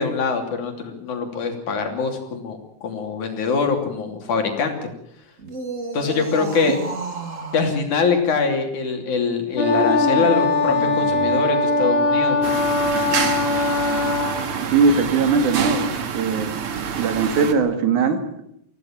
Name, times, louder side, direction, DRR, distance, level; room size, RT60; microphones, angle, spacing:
voice 1, 0.0-4.9 5.9-6.8 7.5-12.4, left 5 dB, 80° left, 4 dB, 4.4 m, -23 dB
sound 1, 5.4-7.7 9.6-11.4 13.0-13.5, equal, 25° right, 2.8 m, -29 dB
Wind instrument woodwind instrument, 9.6-14.4, left 3 dB, 40° left, 7.0 m, -21 dB
sound 2, 12.4-17.5, right 7 dB, 50° right, 2.4 m, -26 dB
voice 2, 14.7-16.5 17.0-18.4, right 4 dB, 90° right, 7 dB, 3.6 m, -20 dB
24.5 x 16.5 x 7.5 m, 0.74 s
omnidirectional pair, 3.4 m